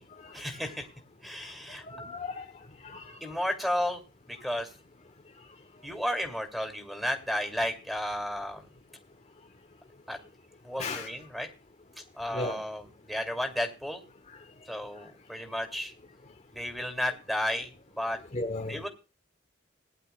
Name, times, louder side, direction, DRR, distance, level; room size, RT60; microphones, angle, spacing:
voice 1, 0.3-0.9 1.2-1.8 3.2-4.0 4.3-4.7 5.8-8.6 10.1-10.2 10.6-11.5 12.2-14.0 14.7-15.9 16.5-17.7 18.0-18.2 18.7-18.9, left 1 dB, ahead, 2.5 m, -33 dB
voice 2, 1.8-2.4 2.8-3.4 10.8-11.1 12.3-12.6 18.3-18.8, left 2 dB, 35° left, 1.0 m, -36 dB
20.0 x 11.0 x 2.3 m
head